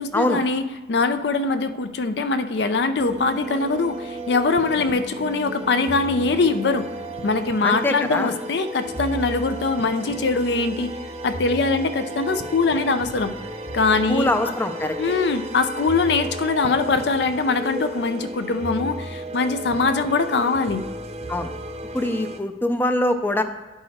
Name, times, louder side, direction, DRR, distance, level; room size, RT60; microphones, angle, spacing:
voice 1, 0.0-6.9 7.2-10.9 11.2-13.3 13.7-14.3 15.0-20.8, left 3 dB, 65° left, 10 dB, 0.5 m, -22 dB
sound 1, 3.0-22.4, right 1 dB, 35° right, 0.7 m, -34 dB
voice 2, 7.6-8.3 14.1-15.0 21.3-21.5 21.9-23.4, left 1 dB, 10° left, 7 dB, 0.4 m, -23 dB
10.5 x 4.8 x 4.2 m, 1.2 s
head